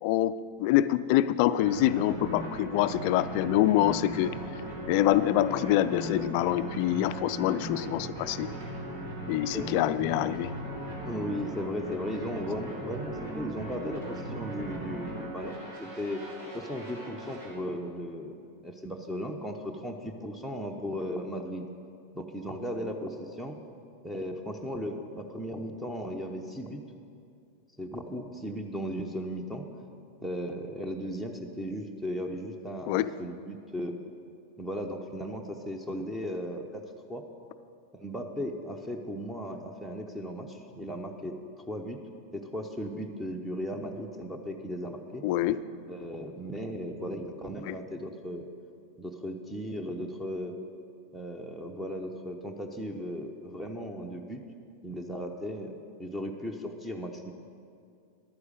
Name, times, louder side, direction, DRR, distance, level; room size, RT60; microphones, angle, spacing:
voice 1, 0.0-4.3 4.9-8.5 9.3-10.5 32.9-33.1 45.2-45.6 47.6-47.7, left 13 dB, 45° left, 14 dB, 0.4 m, -25 dB
sound 1, 1.6-17.5, right 1 dB, 65° right, 3.7 m, -38 dB
voice 2, 9.5-9.9 11.0-16.2 16.5-18.4 18.6-21.7 22.1-23.6 24.0-26.8 27.8-29.7 30.2-34.0 34.6-37.2 37.9-42.0 42.3-45.2 45.9-48.5 49.0-50.5 51.1-54.4 54.8-57.3, equal, 5° right, 4 dB, 0.9 m, -36 dB
11.5 x 9.7 x 6.5 m, 2.4 s
figure-of-eight pair, 90°, 0 cm